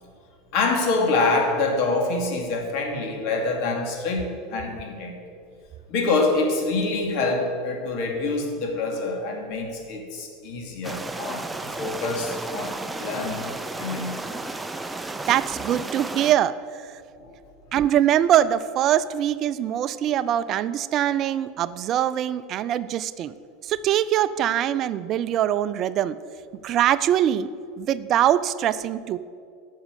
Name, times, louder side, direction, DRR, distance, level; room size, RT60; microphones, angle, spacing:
voice 1, 0.5-5.1 5.9-14.1 17.2-17.3, left 3 dB, 60° left, 2 dB, 2.6 m, -26 dB
sound 1, 10.8-16.3, right 2 dB, 10° right, 0.7 m, -33 dB
voice 2, 15.3-16.9 17.7-23.3 23.6-26.2 26.6-27.5 27.8-29.2, right 11 dB, 45° right, 15 dB, 0.4 m, -23 dB
11.5 x 6.4 x 8.2 m, 2.4 s
hypercardioid pair, 90°, 0 cm